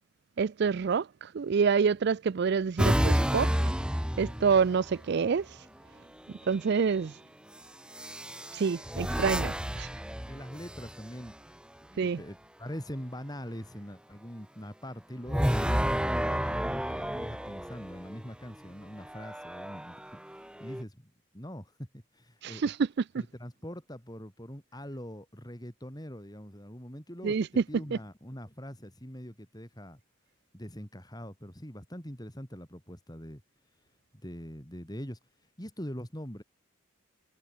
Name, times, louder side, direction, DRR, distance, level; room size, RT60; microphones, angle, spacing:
voice 1, 0.4-3.5 4.2-5.5 6.5-7.1 8.5-9.9 12.0-12.2 22.4-22.8 27.2-27.6 27.9-28.0, right 5 dB, 50° right, 0.4 m, -27 dB
sound 1, 2.8-5.0 6.3-6.8 7.9-11.3 15.3-18.2 19.0-20.8, equal, 5° right, 2.6 m, -31 dB
voice 2, 9.0-9.7 10.3-11.4 11.9-20.0 20.6-22.7 23.2-30.0 30.5-33.4 34.2-35.2 35.6-36.4, equal, 20° left, 6.9 m, -43 dB
head